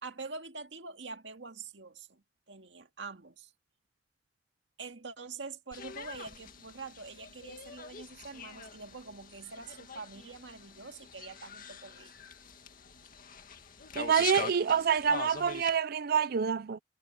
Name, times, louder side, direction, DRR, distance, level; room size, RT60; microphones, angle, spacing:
voice 1, 0.0-3.5 4.8-12.1, right 4 dB, 75° right, 2.0 m, -45 dB
sound 1, 5.7-15.8, left 6 dB, 50° left, 2.0 m, -43 dB
voice 2, 14.0-16.8, right 7 dB, 55° right, 0.5 m, -27 dB
head